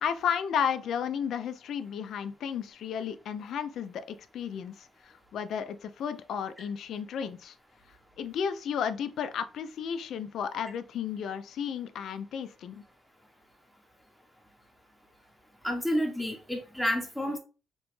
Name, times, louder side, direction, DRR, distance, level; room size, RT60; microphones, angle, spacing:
voice 1, 0.0-7.6 8.2-12.8, left 7 dB, 70° left, 0.3 m, -33 dB
voice 2, 15.6-17.4, equal, ahead, 0.7 m, -30 dB
2.9 x 2.1 x 3.0 m
cardioid pair, 90°, 0 cm